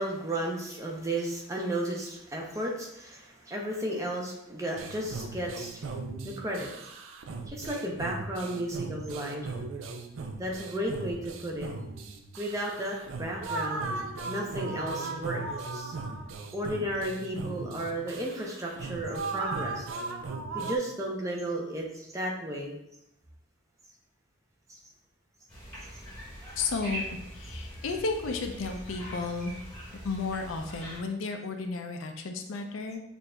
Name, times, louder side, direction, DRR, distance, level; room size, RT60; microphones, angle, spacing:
voice 1, 0.0-5.9 6.2-6.7 7.5-9.5 10.4-11.7 12.4-13.9 14.3-15.4 15.7-15.9 16.5-19.9 20.5-22.8 24.7-24.8, right 1 dB, 15° right, -1 dB, 0.5 m, -33 dB
sound 1, 4.8-20.8, right 3 dB, 75° right, 0.4 m, -37 dB
sound 2, 25.5-31.0, right 1 dB, 5° left, 1.1 m, -42 dB
voice 2, 26.6-27.0 27.3-29.6 30.0-33.0, left 4 dB, 75° left, 4 dB, 0.5 m, -33 dB
6.0 x 2.5 x 2.2 m, 0.84 s
head